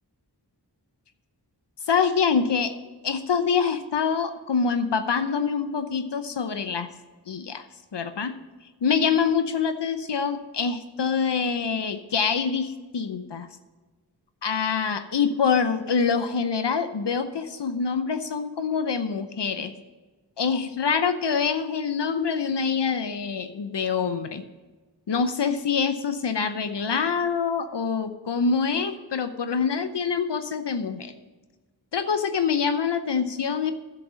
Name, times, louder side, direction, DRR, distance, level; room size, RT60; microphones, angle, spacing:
voice 1, 1.9-2.8 3.0-6.9 7.3-7.6 7.9-8.4 8.8-13.5 14.4-19.7 20.4-24.4 25.1-31.1 31.9-33.7, left 6 dB, 70° left, 10 dB, 0.8 m, -25 dB
10.5 x 7.7 x 6.2 m, 1.3 s
wide cardioid pair, 45°, 43 cm